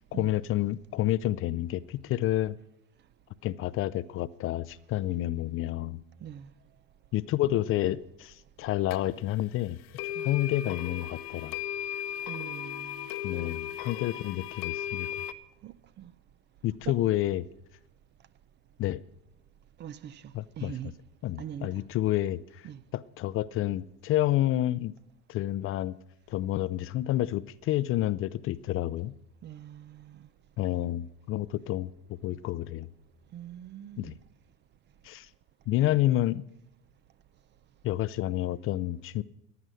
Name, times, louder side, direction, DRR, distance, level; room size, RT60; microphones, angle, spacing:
voice 1, 0.1-2.6 3.4-6.0 7.1-9.8 10.0-11.5 13.2-15.1 16.6-17.4 18.8-19.0 20.3-20.7 21.2-22.7 22.9-24.9 25.3-26.0 26.3-29.1 30.6-32.9 34.0-34.2 35.0-35.3 35.7-36.4 37.8-39.2, left 14 dB, 40° left, 0.5 m, -29 dB
voice 2, 6.2-6.5 10.2-10.3 12.3-13.1 15.6-16.1 16.9-17.1 19.8-20.9 21.4-21.8 22.6-22.8 29.4-30.3 33.3-34.2, right 10 dB, 30° right, 0.5 m, -43 dB
sound 1, 8.9-9.0 9.9-15.3, left 11 dB, 65° left, 0.9 m, -36 dB
15.0 x 9.7 x 6.3 m
supercardioid pair, 100°, 34 cm